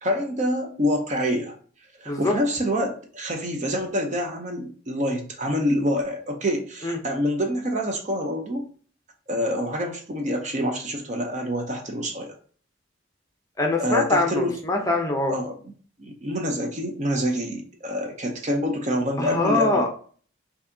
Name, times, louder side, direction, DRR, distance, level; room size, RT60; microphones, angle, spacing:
voice 1, 0.0-1.5 2.0-8.7 9.3-12.4 13.8-14.5 15.3-15.5 16.0-19.9, equal, 35° right, 3 dB, 0.6 m, -26 dB
voice 2, 13.6-15.3 19.2-19.9, left 2 dB, 15° left, 1 dB, 0.6 m, -23 dB
4.6 x 2.7 x 2.7 m, 0.44 s
head